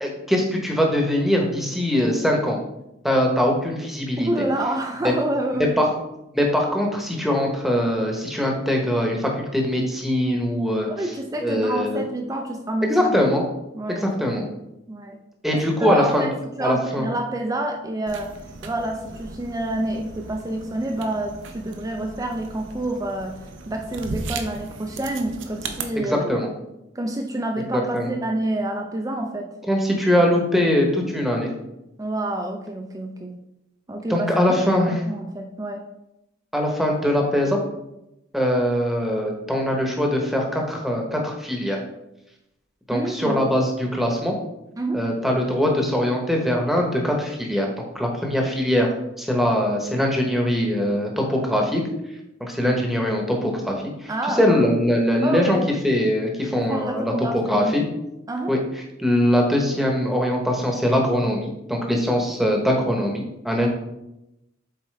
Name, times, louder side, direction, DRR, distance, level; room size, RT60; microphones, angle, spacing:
voice 1, 0.0-2.6 3.0-4.3 5.8-5.9 6.3-10.9 11.4-12.0 12.8-13.4 13.9-14.4 15.4-16.3 16.6-17.1 26.1-26.5 27.7-28.1 29.7-31.5 34.1-35.0 36.5-37.6 38.3-41.8 42.9-44.3 44.9-47.7 47.9-48.9 49.2-51.8 52.4-55.6 55.8-57.8 58.5-58.6 59.0-63.7, equal, ahead, 0 dB, 1.0 m, -22 dB
voice 2, 4.2-5.8 10.9-12.9 13.7-14.5 14.9-15.2 15.5-16.3 16.6-18.3 18.6-23.4 23.7-26.3 26.9-29.5 32.0-33.4 33.9-34.6 34.9-35.8 42.9-43.4 44.8-45.0 54.1-54.5 55.2-55.6 56.6-57.7 58.3-58.5, right 1 dB, 15° right, 3 dB, 0.4 m, -28 dB
sound 1, 18.1-25.8, right 3 dB, 65° right, 0.7 m, -37 dB
7.4 x 4.3 x 3.3 m, 0.88 s
head